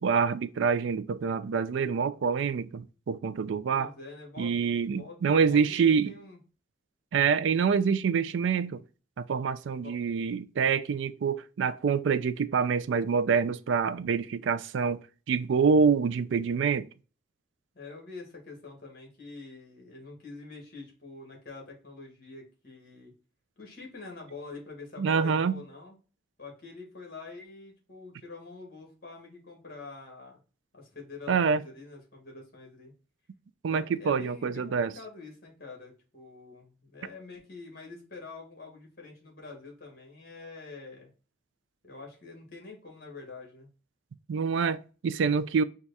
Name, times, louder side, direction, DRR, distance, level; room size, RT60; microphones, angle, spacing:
voice 1, 0.0-3.9 4.4-6.1 7.1-8.8 9.2-15.0 15.3-16.9 25.0-25.6 31.3-31.6 33.6-34.9 44.3-45.6, right 6 dB, 70° right, 0.4 m, -26 dB
voice 2, 3.7-4.5 4.9-5.2 5.5-6.4 9.7-9.9 17.7-23.1 23.6-25.9 26.4-30.4 30.7-32.9 33.7-41.1 41.8-43.7, left 3 dB, 50° left, 1.8 m, -46 dB
4.6 x 2.4 x 4.0 m
head